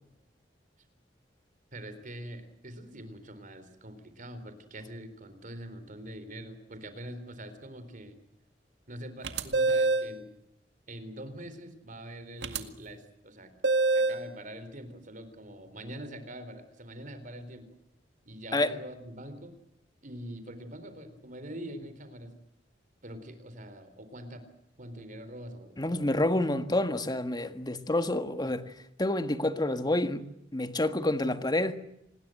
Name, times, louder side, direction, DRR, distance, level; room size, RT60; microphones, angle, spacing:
voice 1, 1.7-8.2 8.9-10.3 10.9-13.5 13.9-17.7 18.3-19.5 20.0-22.4 23.0-24.4 24.8-26.1, right 1 dB, 45° right, 4.0 m, -44 dB
sound 1, 9.2-10.1 12.4-12.6 13.6-14.2, right 3 dB, 70° right, 2.0 m, -25 dB
voice 2, 25.8-28.6 29.0-30.2 30.5-31.8, left 1 dB, 25° left, 1.6 m, -28 dB
27.0 x 20.0 x 7.8 m
head